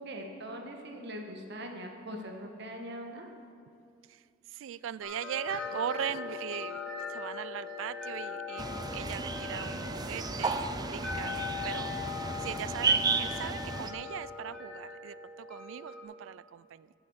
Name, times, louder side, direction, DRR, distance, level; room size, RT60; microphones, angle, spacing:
voice 1, 0.0-3.3, equal, 60° right, 3 dB, 1.4 m, -41 dB
voice 2, 4.1-6.8 7.1-16.9, right 9 dB, 85° right, 18 dB, 0.3 m, -40 dB
sound 1, 5.0-16.0, left 5 dB, 5° left, 2.2 m, -40 dB
sound 2, 8.6-13.9, right 4 dB, 20° right, 0.4 m, -33 dB
10.0 x 7.8 x 7.2 m, 2.3 s
head